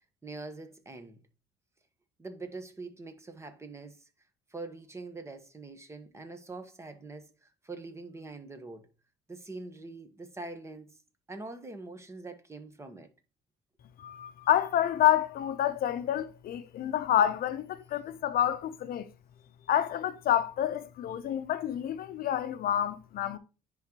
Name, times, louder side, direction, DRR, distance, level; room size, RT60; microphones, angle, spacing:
voice 1, 0.2-1.2 2.2-4.0 4.5-8.9 9.3-11.0 11.3-13.1, right 3 dB, 15° right, 1.2 m, -44 dB
voice 2, 14.0-19.1 19.7-23.4, left 11 dB, 60° left, 0.7 m, -28 dB
10.0 x 3.9 x 3.0 m
cardioid pair, 110°, 17 cm